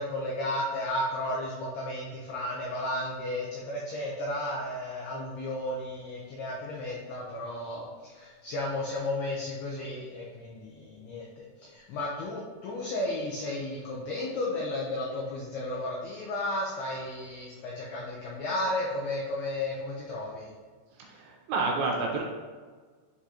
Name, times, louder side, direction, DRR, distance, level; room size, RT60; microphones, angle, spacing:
voice 1, 0.0-20.5, left 1 dB, 85° left, -3 dB, 2.2 m, -33 dB
voice 2, 21.0-22.2, right 3 dB, 80° right, 0 dB, 2.8 m, -29 dB
10.5 x 3.8 x 2.8 m, 1.5 s
omnidirectional pair, 5.7 m